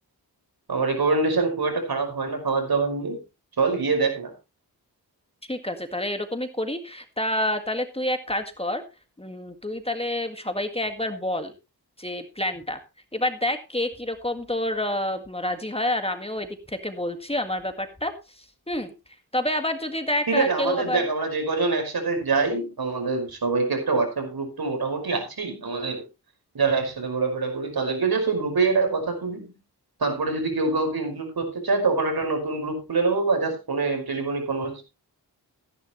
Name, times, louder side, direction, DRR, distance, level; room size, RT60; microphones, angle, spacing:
voice 1, 0.7-3.2 3.6-4.3 20.3-26.0 26.5-29.5 30.0-34.8, right 4 dB, 65° right, 4 dB, 5.4 m, -25 dB
voice 2, 5.5-8.8 9.2-11.5 12.0-12.8 13.1-18.9 19.3-21.0, left 1 dB, 15° left, 7 dB, 1.9 m, -28 dB
15.0 x 11.0 x 3.2 m, 0.28 s
cardioid pair, 65°, 40 cm